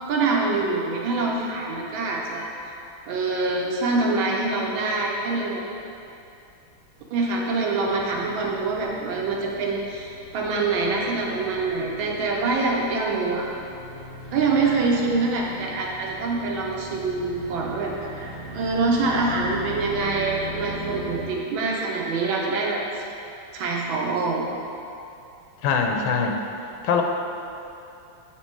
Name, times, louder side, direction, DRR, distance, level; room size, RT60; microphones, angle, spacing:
voice 1, 0.0-2.5 3.1-5.6 7.1-13.5 14.3-23.0 23.5-24.4, right 3 dB, 75° right, -2 dB, 1.4 m, -25 dB
sound 1, 7.9-21.2, right 1 dB, 20° right, 0.9 m, -39 dB
voice 2, 25.6-26.4 26.8-27.0, left 5 dB, 80° left, 3 dB, 1.4 m, -22 dB
8.2 x 3.0 x 4.6 m, 2.6 s
omnidirectional pair, 2.3 m